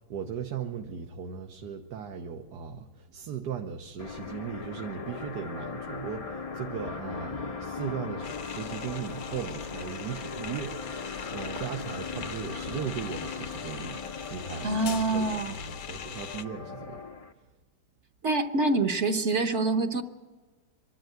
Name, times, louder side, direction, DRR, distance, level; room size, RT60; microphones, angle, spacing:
voice 1, 0.1-17.0, right 7 dB, 85° right, 4 dB, 1.6 m, -38 dB
sound 1, 4.0-17.3, left 5 dB, 45° left, 0.4 m, -39 dB
sound 2, 8.2-16.4, left 8 dB, 60° left, 1.1 m, -42 dB
voice 2, 14.6-15.5 18.2-20.0, right 2 dB, 50° right, 6 dB, 1.1 m, -26 dB
24.5 x 12.0 x 9.3 m, 1.4 s
omnidirectional pair, 1.7 m